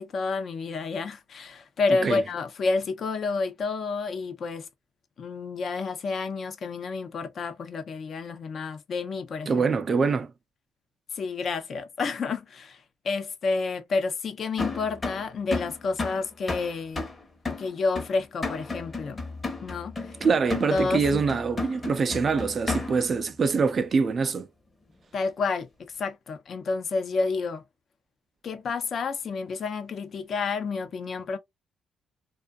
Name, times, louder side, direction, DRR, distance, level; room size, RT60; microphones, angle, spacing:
voice 1, 0.0-4.7 5.2-9.7 11.1-17.1 17.5-19.2 19.6-20.2 20.7-21.2 25.1-27.6 28.4-31.4, left 4 dB, 55° left, 0.6 m, -30 dB
voice 2, 9.5-10.3 20.2-24.5, right 5 dB, 45° right, 0.4 m, -24 dB
sound 1, 14.6-23.2, left 3 dB, 30° left, 0.9 m, -34 dB
2.5 x 2.4 x 2.3 m
cardioid pair, 90°, 0 cm